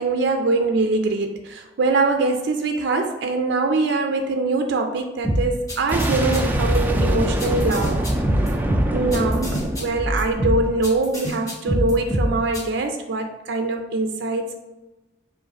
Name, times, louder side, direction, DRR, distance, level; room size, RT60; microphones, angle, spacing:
voice 1, 0.0-8.0 8.9-14.6, right 3 dB, 75° right, 5 dB, 0.4 m, -23 dB
sound 1, 5.2-12.6, equal, 20° left, 1.1 m, -24 dB
Boom, 5.9-10.8, right 1 dB, 10° right, 0.3 m, -24 dB
5.0 x 2.4 x 4.0 m, 1.1 s
head